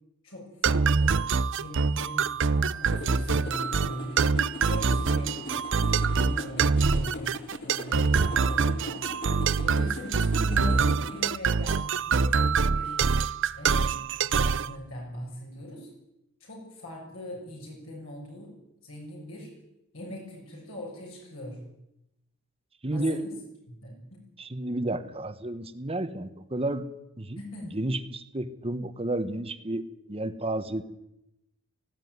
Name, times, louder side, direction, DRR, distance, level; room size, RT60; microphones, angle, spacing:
voice 1, 0.2-1.2 1.6-4.2 4.7-5.4 5.9-9.1 9.6-13.0 13.5-15.9 16.4-19.5 19.9-21.6 22.9-23.3 23.7-24.2 24.7-24.8 27.4-27.7, left 1 dB, 65° left, -2 dB, 7.1 m, -41 dB
sound 1, 0.6-14.7, right 5 dB, 55° right, 0.6 m, -25 dB
sound 2, 2.9-11.2, left 1 dB, 50° left, 4.9 m, -40 dB
voice 2, 22.8-23.2 24.4-26.9 27.2-27.4 27.7-29.8 30.1-30.8, right 1 dB, 25° right, 11 dB, 1.2 m, -31 dB
18.5 x 15.5 x 9.6 m, 0.87 s
head